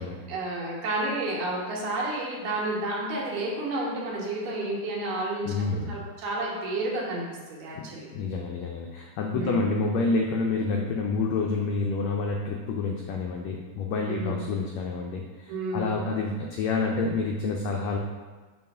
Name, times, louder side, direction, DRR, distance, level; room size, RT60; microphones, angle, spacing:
voice 1, 0.3-5.5 5.9-7.2 7.5-8.1 9.3-9.6 14.1-14.4 15.5-16.0, right 2 dB, 85° right, -4 dB, 2.9 m, -30 dB
voice 2, 5.5-5.9 7.7-18.0, left 3 dB, 85° left, 1 dB, 1.5 m, -28 dB
6.8 x 3.2 x 5.4 m, 1.3 s
omnidirectional pair, 3.7 m